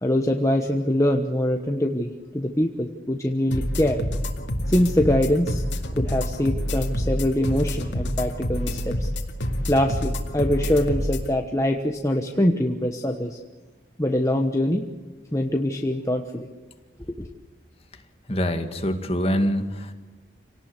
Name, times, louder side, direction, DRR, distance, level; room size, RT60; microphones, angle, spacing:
voice 1, 0.0-4.0 4.7-5.6 5.9-9.1 9.7-13.4 14.0-14.8 15.3-16.5 17.2-17.3, left 1 dB, 15° left, 3 dB, 1.2 m, -23 dB
sound 1, 3.5-11.3, equal, 85° left, 2.3 m, -27 dB
voice 2, 18.3-19.9, equal, 30° left, 6 dB, 2.1 m, -25 dB
27.5 x 18.5 x 8.2 m, 1.2 s
head